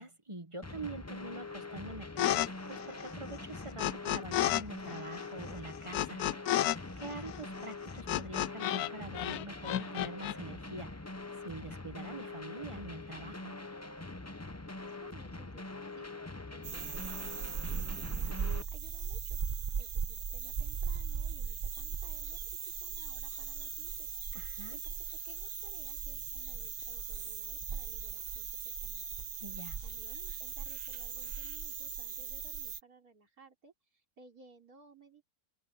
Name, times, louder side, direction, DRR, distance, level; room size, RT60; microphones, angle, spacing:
voice 1, 0.0-6.2 7.0-11.0 11.4-13.5 24.3-24.8 29.4-29.8, right 2 dB, 20° right, 1.6 m, -45 dB
sound 1, 0.6-18.6, left 2 dB, 15° left, 0.7 m, -44 dB
sound 2, 2.2-2.5 2.7-4.6 4.9-8.9 9.1-10.3, left 13 dB, 85° left, 1.1 m, -32 dB
voice 2, 14.8-16.1 16.5-19.4 19.8-24.1 24.7-24.9 25.2-29.1 29.8-35.2, right 5 dB, 80° right, 4.2 m, -59 dB
sound 3, 16.6-32.8, right 6 dB, 45° right, 0.5 m, -38 dB
omnidirectional pair, 1.6 m